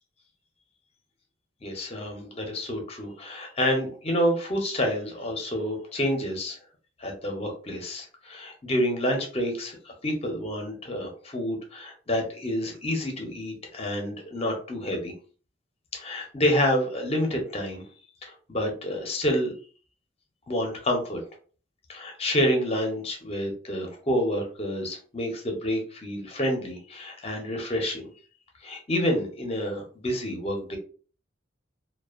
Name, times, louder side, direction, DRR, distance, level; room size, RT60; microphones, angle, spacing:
voice 1, 1.6-6.6 7.0-15.1 15.9-17.9 18.2-19.5 20.5-21.2 21.9-28.1 28.6-30.8, equal, 30° left, 2 dB, 0.6 m, -28 dB
2.5 x 2.2 x 2.4 m, 0.40 s
head